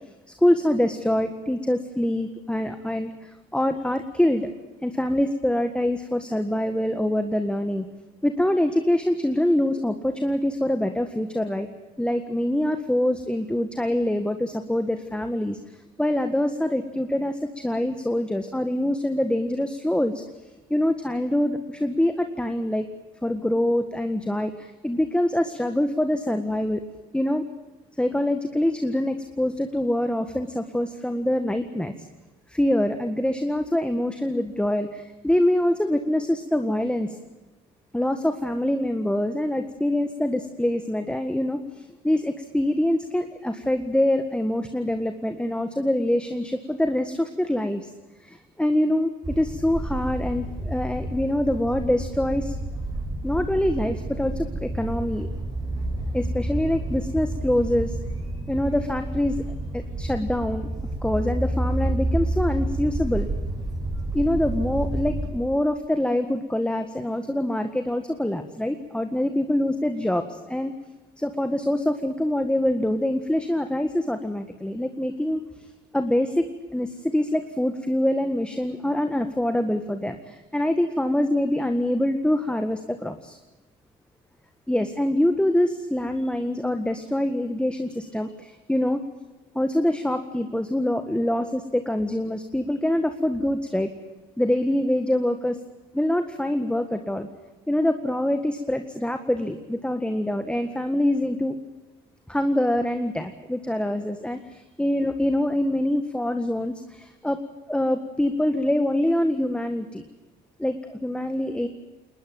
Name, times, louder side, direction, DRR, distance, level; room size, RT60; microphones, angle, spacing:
voice 1, 0.4-4.5 4.8-7.9 8.2-11.7 12.0-15.6 16.0-20.1 20.7-22.9 23.2-26.8 27.1-27.5 28.0-31.9 32.5-37.2 37.9-47.9 48.2-52.6 53.2-55.3 56.1-58.0 58.5-59.4 59.7-60.7 61.0-63.3 64.1-70.7 71.2-75.4 75.9-83.4 84.7-89.0 89.6-93.9 94.4-95.6 95.9-97.3 97.7-101.6 102.3-107.4 107.7-110.0 110.6-111.7, left 1 dB, 5° left, 7 dB, 1.7 m, -25 dB
sound 1, 49.2-65.3, right 1 dB, 20° right, 7.7 m, -29 dB
21.0 x 20.0 x 9.2 m, 1.2 s
cardioid pair, 90°, 20 cm